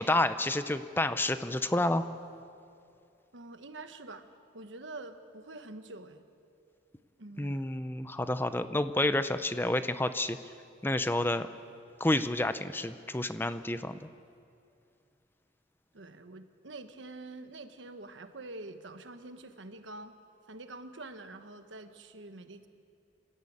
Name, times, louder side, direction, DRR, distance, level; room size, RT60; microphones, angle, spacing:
voice 1, 0.0-2.1 7.4-10.4 10.8-11.5 12.0-14.0, left 1 dB, 10° left, 11 dB, 0.6 m, -29 dB
voice 2, 3.3-4.3 4.5-6.2 7.2-7.6 15.9-20.1 20.5-22.7, right 2 dB, 85° right, 8 dB, 1.3 m, -46 dB
27.5 x 13.5 x 8.7 m, 2.5 s
head